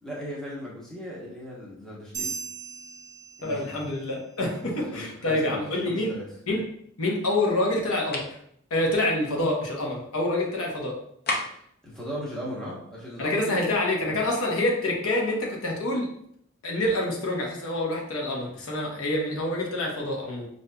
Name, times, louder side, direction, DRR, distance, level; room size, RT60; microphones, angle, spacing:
voice 1, 0.0-2.3 3.4-3.8 4.6-6.2 11.4-13.6 14.0-14.2 20.4-20.5, equal, 5° left, -7 dB, 0.9 m, -38 dB
sound 1, 2.1-4.0, right 6 dB, 15° right, 0.5 m, -37 dB
voice 2, 3.4-6.1 6.5-6.6 7.0-8.2 8.7-10.9 13.2-16.1 16.6-20.5, left 1 dB, 80° left, -1 dB, 0.9 m, -27 dB
sound 2, 8.1-8.4 11.3-11.7, left 2 dB, 45° left, 0.5 m, -30 dB
5.1 x 2.6 x 2.2 m, 0.70 s
head